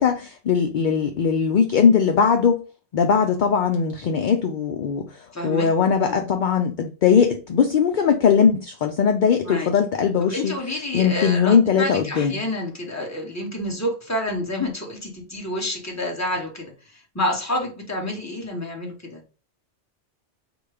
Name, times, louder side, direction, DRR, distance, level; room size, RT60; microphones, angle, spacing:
voice 1, 0.0-2.6 2.9-5.1 5.4-10.5 10.9-12.4, left 6 dB, 55° left, 0.5 m, -20 dB
voice 2, 5.3-5.7 6.0-6.3 9.4-9.7 10.3-19.2, left 1 dB, 15° left, 1.0 m, -29 dB
4.8 x 2.2 x 4.8 m
omnidirectional pair, 1.2 m